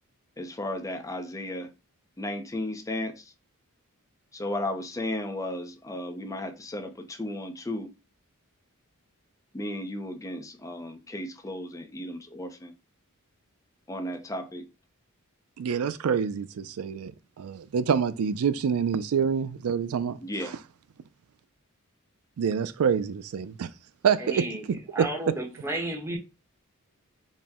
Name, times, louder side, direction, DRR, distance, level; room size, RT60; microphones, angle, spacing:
voice 1, 0.4-1.7 2.2-3.2 4.3-7.9 9.5-12.7 13.9-14.7 20.2-20.6, left 1 dB, 15° left, 0.5 m, -34 dB
voice 2, 15.6-17.1 17.4-20.2 20.4-20.5 22.4-23.7 24.0-24.4, right 7 dB, 80° right, 0.4 m, -26 dB
voice 3, 24.2-26.2, right 1 dB, 10° right, 0.9 m, -33 dB
4.2 x 2.1 x 3.5 m
head